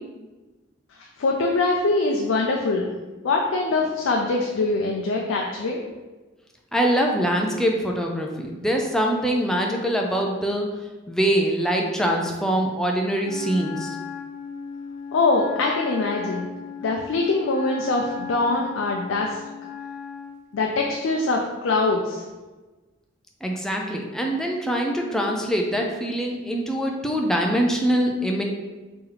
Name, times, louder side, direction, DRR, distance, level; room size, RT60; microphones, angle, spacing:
voice 1, 1.2-2.9 3.2-5.8 15.1-16.5 16.8-19.4 20.5-22.2, left 3 dB, 75° left, 0 dB, 0.4 m, -23 dB
voice 2, 6.7-10.7 11.1-14.0 23.4-28.4, equal, 5° left, 0 dB, 0.4 m, -23 dB
Wind instrument woodwind instrument, 13.2-20.4, left 6 dB, 45° left, 0.7 m, -36 dB
3.0 x 2.9 x 3.8 m, 1.2 s
head